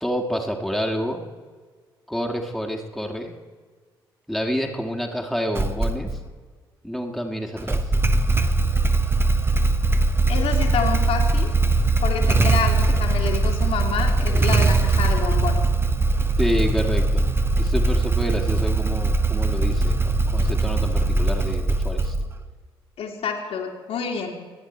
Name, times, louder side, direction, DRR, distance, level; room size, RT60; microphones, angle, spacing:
voice 1, 0.0-1.2 2.1-3.3 4.3-6.1 6.8-7.9 16.4-17.3 17.6-22.1, equal, ahead, 2 dB, 1.9 m, -28 dB
Motorcycle / Engine starting, 5.5-6.2 7.6-22.5, right 3 dB, 20° right, 1.1 m, -21 dB
voice 2, 10.3-11.5 12.0-15.6 23.0-24.3, left 6 dB, 55° left, 1 dB, 2.2 m, -28 dB
25.5 x 10.0 x 4.3 m, 1.5 s
figure-of-eight pair, 40°, 12 cm